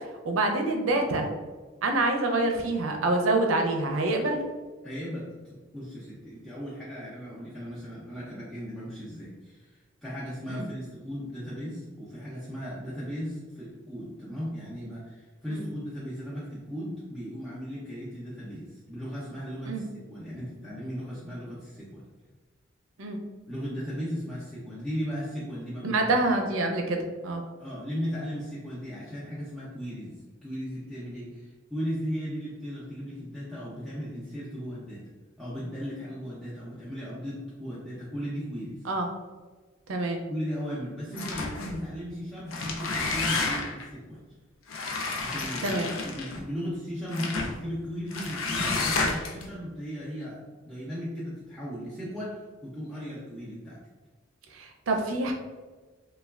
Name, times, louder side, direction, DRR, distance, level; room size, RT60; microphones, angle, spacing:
voice 1, 0.2-1.3 1.8-4.4 10.5-10.7 15.5-15.6 19.7-19.8 23.0-23.2 25.8-27.4 38.9-39.1 39.9-40.2 45.6-45.9 54.5-55.3, right 2 dB, 75° right, 3 dB, 0.5 m, -26 dB
voice 2, 4.8-22.0 23.5-26.1 27.6-30.1 30.4-35.0 35.4-38.8 40.3-44.2 45.2-50.4 50.6-53.8, equal, ahead, -11 dB, 0.4 m, -36 dB
sound 1, 41.1-41.8 42.4-43.9 44.7-46.4 47.1-47.6 48.1-49.4, left 3 dB, 75° left, 0.4 m, -30 dB
3.2 x 2.2 x 2.3 m, 1.4 s
head